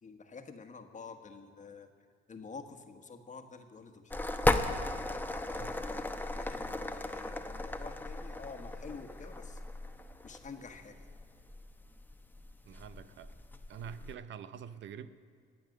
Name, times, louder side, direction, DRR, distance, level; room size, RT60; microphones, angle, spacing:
voice 1, 0.0-1.9 2.3-4.2 5.4-9.7 10.2-11.1 13.8-14.0, left 5 dB, 40° left, 1.4 m, -49 dB
sound 1, 4.1-14.2, left 2 dB, 10° left, 0.9 m, -36 dB
voice 2, 12.6-13.3 13.7-15.1, right 8 dB, 70° right, 0.7 m, -46 dB
22.0 x 8.6 x 6.5 m
cardioid pair, 90°, 20 cm